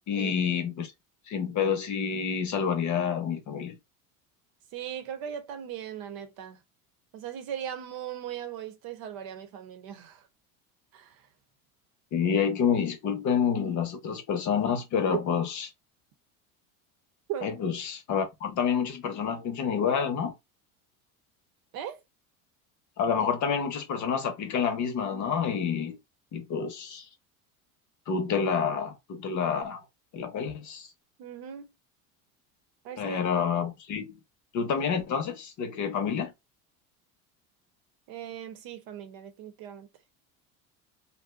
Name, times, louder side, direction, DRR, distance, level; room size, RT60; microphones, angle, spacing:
voice 1, 0.1-0.9 1.3-3.8 12.1-15.7 17.4-20.3 23.0-26.0 26.3-27.1 28.1-29.8 30.1-30.9 33.0-34.2 34.5-36.3, left 7 dB, 45° left, 0.9 m, -28 dB
voice 2, 4.7-6.6 7.1-10.2 10.9-11.2 17.3-17.5 21.7-22.0 31.2-31.7 32.8-33.2 38.1-39.9, right 9 dB, 55° right, 0.8 m, -38 dB
2.6 x 2.2 x 2.4 m
supercardioid pair, 100°, 42 cm